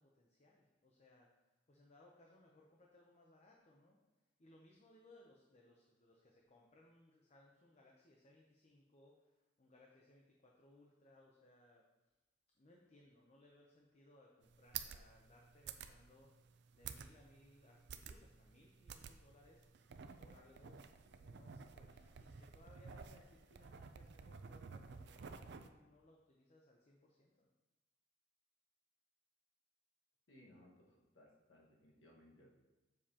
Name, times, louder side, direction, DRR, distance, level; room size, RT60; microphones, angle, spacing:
voice 1, 0.0-4.0 4.4-11.9 12.5-19.9 20.2-27.5, left 1 dB, 35° left, -1 dB, 0.7 m, -66 dB
sound 1, 14.4-25.7, right 7 dB, 65° right, 0.4 m, -52 dB
voice 2, 30.3-32.5, left 1 dB, 90° left, -3 dB, 1.6 m, -64 dB
7.5 x 6.5 x 2.9 m, 1.1 s
head